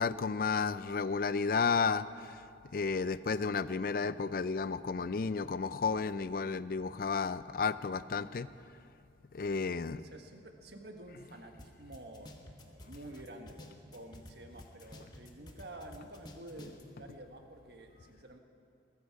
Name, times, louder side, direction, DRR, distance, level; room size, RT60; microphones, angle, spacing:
voice 1, 0.0-2.4 2.7-8.5 9.3-10.0, left 5 dB, 50° left, 15 dB, 0.4 m, -32 dB
voice 2, 9.9-18.4, right 1 dB, 65° right, 4 dB, 1.4 m, -50 dB
sound 1, 11.6-11.7 11.9-14.3 14.6-16.8, left 1 dB, 25° left, 1.1 m, -50 dB
21.0 x 13.5 x 4.7 m, 2.4 s
head